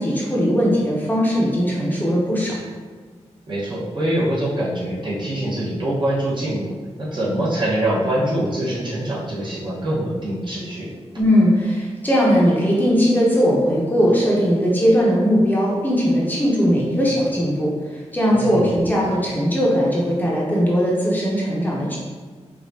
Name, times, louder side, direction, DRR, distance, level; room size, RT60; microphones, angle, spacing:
voice 1, 0.0-2.6 11.2-22.0, equal, 15° left, -5 dB, 0.7 m, -19 dB
voice 2, 3.5-6.7 7.0-10.9 18.3-18.7, right 1 dB, 45° right, -7 dB, 1.1 m, -24 dB
5.0 x 2.4 x 2.7 m, 1.5 s
wide cardioid pair, 115°, 11 cm